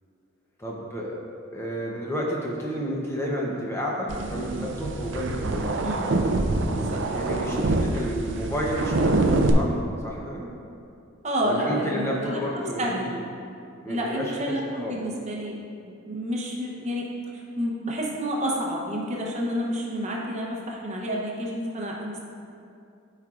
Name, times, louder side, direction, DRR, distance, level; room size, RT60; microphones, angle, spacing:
voice 1, 0.6-1.2 1.5-5.9 6.6-9.8 10.0-10.5 11.4-13.2 13.8-15.0, equal, 10° left, -4 dB, 0.7 m, -31 dB
sound 1, 4.1-9.5, right 2 dB, 60° right, 0.5 m, -25 dB
voice 2, 5.8-6.1 6.7-7.3 11.2-13.2 13.9-22.3, equal, 30° right, -2 dB, 0.8 m, -30 dB
12.5 x 4.5 x 2.5 m, 2.6 s
head